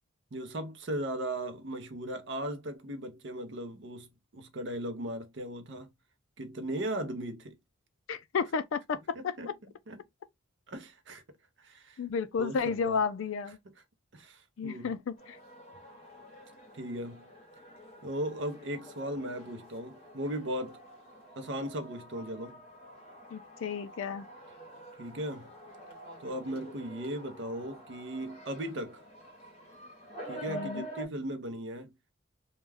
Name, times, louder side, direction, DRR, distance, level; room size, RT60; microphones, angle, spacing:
voice 1, 0.3-5.9 6.4-7.6 9.1-10.0 10.7-11.2 11.6-12.0 12.4-13.0 13.6-13.8 14.1-15.0 16.7-17.3 18.0-20.8 21.4-22.6 25.0-25.5 26.2-29.0 30.3-31.9, right 1 dB, 60° right, 0.6 m, -37 dB
voice 2, 8.1-9.3 12.0-13.6 14.6-15.2 23.3-24.3 30.5-30.8, left 5 dB, 75° left, 0.4 m, -32 dB
sound 1, 15.2-31.1, right 1 dB, 30° left, 0.8 m, -48 dB
2.3 x 2.2 x 3.2 m
head